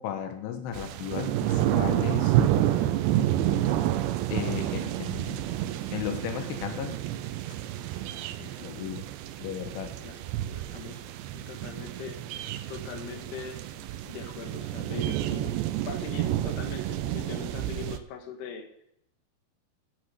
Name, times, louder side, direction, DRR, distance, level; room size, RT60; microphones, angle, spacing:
voice 1, 0.0-2.4 4.3-5.6 5.9-7.0 8.4-9.1 9.4-10.0, left 9 dB, 90° left, 6 dB, 3.7 m, -35 dB
sound 1, 0.7-18.0, right 12 dB, 80° right, 2.9 m, -29 dB
voice 2, 2.7-3.8 10.0-11.0 11.3-12.2 12.7-13.6 14.1-18.7, left 6 dB, 65° left, 4 dB, 3.6 m, -42 dB
13.0 x 8.5 x 7.9 m, 0.76 s
omnidirectional pair, 5.4 m